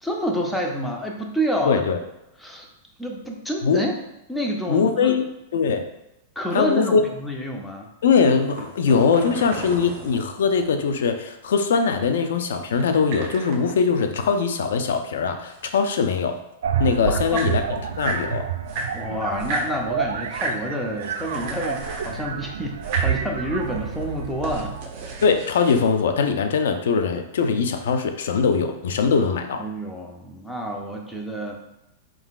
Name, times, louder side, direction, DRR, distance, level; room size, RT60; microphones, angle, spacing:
voice 1, 0.0-1.8 2.4-2.7 3.0-3.9 4.3-5.2 6.4-7.9 17.1-17.4 18.9-24.8 29.6-31.6, equal, 5° left, 0 dB, 0.6 m, -28 dB
voice 2, 1.6-2.0 3.6-3.8 4.7-5.2 5.5-5.8 6.5-7.0 8.0-16.4 16.8-17.6 18.0-18.4 25.2-29.6, left 5 dB, 85° left, 7 dB, 0.5 m, -21 dB
sound 1, 8.4-10.9 12.7-14.8 15.1-16.3 16.9-17.0 17.2-18.3 18.7-19.7 20.2-20.6 21.0-22.2 22.7-23.2 23.7-25.8, right 3 dB, 45° right, 0.9 m, -34 dB
sound 2, 16.6-25.4, right 8 dB, 85° right, 0.3 m, -29 dB
4.4 x 3.8 x 2.4 m, 0.89 s
supercardioid pair, 150°, 0 cm